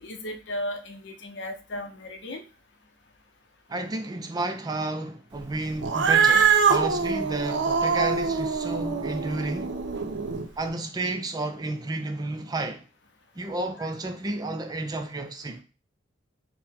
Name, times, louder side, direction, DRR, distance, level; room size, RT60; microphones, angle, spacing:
voice 1, 0.0-2.4, left 1 dB, 70° left, 0.6 m, -35 dB
voice 2, 3.7-9.7 10.6-12.8 13.4-15.6, right 2 dB, 20° right, 0.4 m, -31 dB
Cat, 5.8-10.4, right 6 dB, 80° right, 0.5 m, -23 dB
4.1 x 2.1 x 4.1 m
head